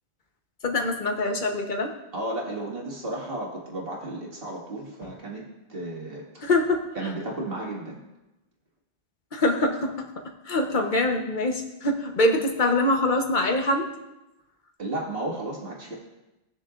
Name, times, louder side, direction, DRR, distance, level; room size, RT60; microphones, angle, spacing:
voice 1, 0.6-1.9 6.4-6.8 9.3-10.1 10.5-13.9, left 2 dB, 45° left, 3 dB, 1.2 m, -24 dB
voice 2, 2.1-5.4 5.7-6.4 7.0-8.0 14.8-15.9, right 1 dB, 55° right, -3 dB, 2.2 m, -33 dB
18.5 x 6.5 x 2.5 m, 1.0 s
omnidirectional pair, 1.2 m